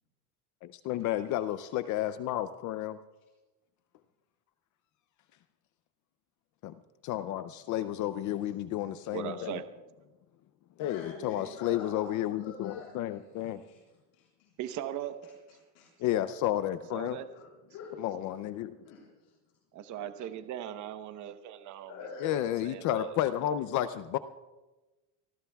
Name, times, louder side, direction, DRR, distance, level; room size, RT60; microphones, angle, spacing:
voice 1, 0.6-3.0 6.6-6.7 7.0-9.6 10.8-13.6 16.0-17.2 18.0-18.8 22.2-24.2, left 12 dB, 40° left, 13 dB, 0.5 m, -32 dB
voice 2, 9.1-9.6 14.6-15.2 16.9-17.3 19.7-21.9 22.3-23.2, right 10 dB, 40° right, 9 dB, 1.0 m, -39 dB
voice 3, 10.8-12.1 12.4-14.2 15.7-15.9 17.2-17.4 17.7-17.9 18.8-19.3 21.9-22.4, left 5 dB, 65° left, -5 dB, 6.4 m, -46 dB
27.5 x 19.5 x 2.3 m, 1.1 s
cardioid pair, 150°, 47 cm